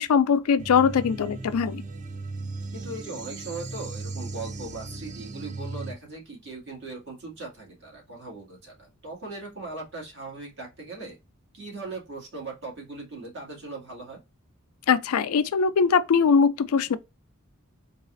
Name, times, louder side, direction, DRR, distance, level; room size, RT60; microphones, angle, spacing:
voice 1, 0.0-1.8 14.9-17.0, left 6 dB, 90° left, 0.4 m, -21 dB
sound 1, 0.6-5.9, right 3 dB, 35° right, 0.5 m, -37 dB
voice 2, 2.7-11.2 11.5-14.2, right 3 dB, 55° right, 1.9 m, -39 dB
4.0 x 2.4 x 2.5 m
head